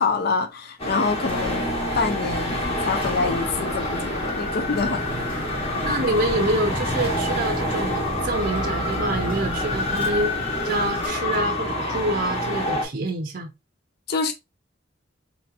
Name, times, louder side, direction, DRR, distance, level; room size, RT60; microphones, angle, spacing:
voice 1, 0.0-1.7 1.9-5.0 14.1-14.3, left 4 dB, 50° left, 0.5 m, -26 dB
Traffic noise roadway noise, 0.8-12.8, left 1 dB, 35° left, 1.2 m, -27 dB
sound 1, 1.2-11.1, right 1 dB, 10° right, 0.9 m, -39 dB
Vehicle, 4.7-10.1, equal, 10° left, 0.6 m, -36 dB
voice 2, 5.0-5.4 5.8-10.3 10.6-13.5, right 1 dB, 45° right, 0.6 m, -27 dB
4.3 x 2.8 x 2.4 m
head